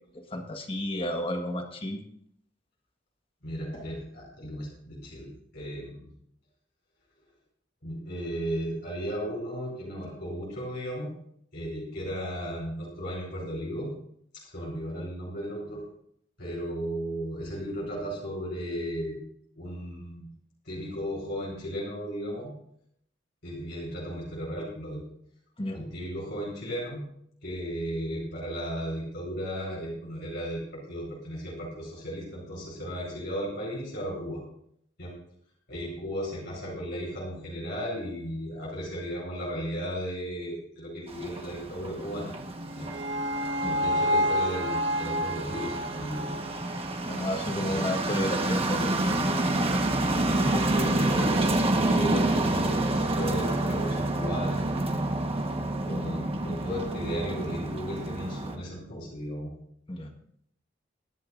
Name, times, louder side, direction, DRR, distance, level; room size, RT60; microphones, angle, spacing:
voice 1, 0.1-2.0 25.6-25.8 43.6-43.8 47.0-48.9 59.9-60.1, left 1 dB, 30° left, 5 dB, 1.5 m, -32 dB
voice 2, 3.4-6.1 7.8-11.1 11.5-13.9 14.4-15.8 16.4-19.2 19.5-20.2 20.6-22.5 23.4-25.0 25.7-27.0 27.4-30.6 30.9-34.4 35.0-35.1 35.7-42.3 42.7-42.9 43.6-46.4 47.7-47.8 50.0-55.0 55.3-55.5 55.8-59.5, equal, 65° left, -4 dB, 4.8 m, -35 dB
sound 1, 41.1-58.6, right 2 dB, 30° right, 1.3 m, -28 dB
sound 2, 42.5-47.6, equal, 75° right, 1.6 m, -30 dB
23.0 x 10.5 x 2.6 m, 0.70 s
head